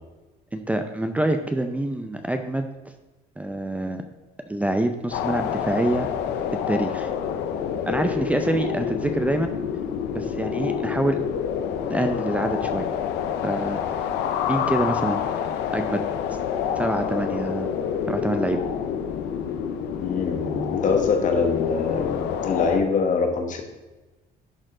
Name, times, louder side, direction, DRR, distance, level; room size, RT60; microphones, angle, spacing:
voice 1, 0.5-2.7 3.4-4.0 4.5-6.1 6.7-7.1 7.9-9.5 10.1-11.2 11.9-12.9 13.4-13.8 14.5-15.2 15.7-16.0 16.3-16.4 16.8-17.7 18.1-18.6, right 1 dB, 10° right, 6 dB, 0.5 m, -26 dB
sound 1, 5.1-22.8, left 8 dB, 85° left, 0.7 m, -27 dB
voice 2, 20.0-23.7, left 5 dB, 50° left, 4 dB, 1.4 m, -24 dB
11.5 x 4.2 x 3.8 m, 1.1 s
cardioid pair, 110°, 17 cm